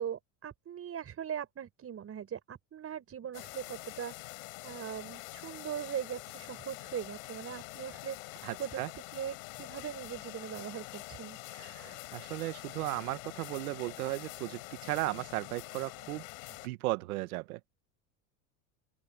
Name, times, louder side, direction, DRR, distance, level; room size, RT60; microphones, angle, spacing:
voice 1, 0.0-11.4, right 9 dB, 35° right, 7.1 m, -40 dB
sound 1, 3.3-16.7, left 32 dB, 75° left, 5.1 m, -46 dB
voice 2, 8.4-8.9 11.6-16.2 16.6-17.6, right 20 dB, 85° right, 1.3 m, -36 dB
open air
supercardioid pair, 120°, 42 cm